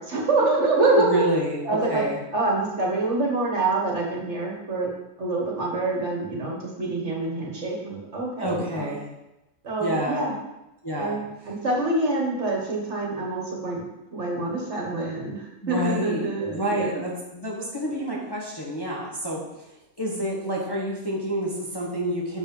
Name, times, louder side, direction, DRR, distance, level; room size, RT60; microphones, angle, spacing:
voice 1, 0.0-1.2 1.7-2.0 2.3-4.9 5.2-8.9 9.6-10.3 11.0-13.9 14.1-16.9, right 2 dB, 55° right, -2 dB, 1.7 m, -26 dB
voice 2, 1.0-2.2 8.4-9.1 9.8-10.2 10.8-11.2 11.4-11.5 15.6-19.7 20.0-22.4, equal, 20° left, -4 dB, 1.1 m, -28 dB
6.0 x 5.2 x 5.4 m, 0.94 s
omnidirectional pair, 1.5 m